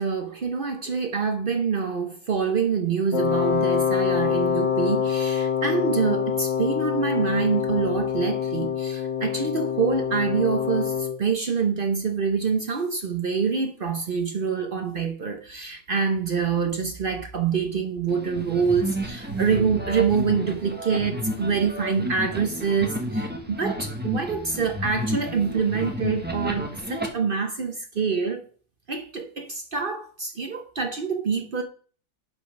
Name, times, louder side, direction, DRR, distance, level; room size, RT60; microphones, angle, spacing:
voice 1, 0.0-28.4 28.9-31.6, right 5 dB, 60° right, 0.5 m, -26 dB
Wind instrument woodwind instrument, 3.1-11.2, left 7 dB, 80° left, 1.8 m, -25 dB
sound 1, 18.1-27.1, equal, 5° right, 0.9 m, -31 dB
8.1 x 5.1 x 5.2 m
omnidirectional pair, 2.1 m